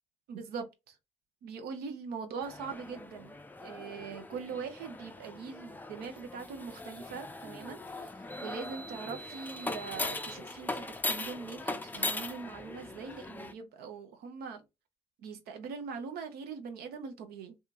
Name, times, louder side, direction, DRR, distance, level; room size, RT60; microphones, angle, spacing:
voice 1, 0.3-1.0 1.4-14.6 15.2-17.6, right 5 dB, 70° right, 0.7 m, -42 dB
sound 1, 2.4-13.5, left 2 dB, 10° left, 0.4 m, -40 dB
2.7 x 2.4 x 2.5 m
hypercardioid pair, 55°, 17 cm